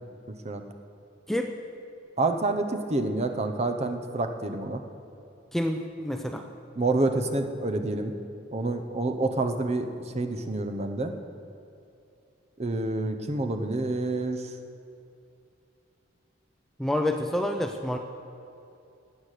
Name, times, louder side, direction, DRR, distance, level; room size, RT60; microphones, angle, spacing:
voice 1, 2.2-4.8 6.8-8.1 8.5-11.1 12.6-14.5, right 2 dB, 35° right, 6 dB, 0.8 m, -28 dB
voice 2, 5.5-6.4 16.8-18.0, left 1 dB, ahead, 4 dB, 0.5 m, -28 dB
18.0 x 8.1 x 6.7 m, 2.6 s
head